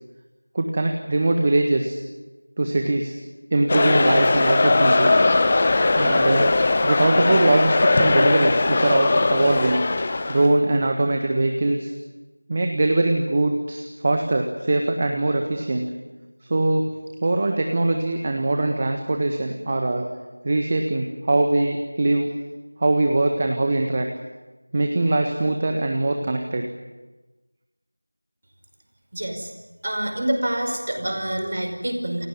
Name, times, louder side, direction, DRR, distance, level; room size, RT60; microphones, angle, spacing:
voice 1, 0.5-2.0 2.6-3.2 3.5-5.2 5.9-6.5 6.8-9.8 10.3-11.9 12.5-15.9 16.5-16.9 17.2-20.1 20.4-22.3 22.8-24.1 24.7-26.6, right 2 dB, 20° right, 4 dB, 1.6 m, -22 dB
sound 1, 3.7-10.5, left 2 dB, 20° left, 0.9 m, -19 dB
voice 2, 29.1-29.5 29.8-32.3, right 1 dB, 35° right, 4 dB, 5.1 m, -26 dB
28.5 x 17.5 x 9.5 m, 1.1 s
figure-of-eight pair, 175°, 0 cm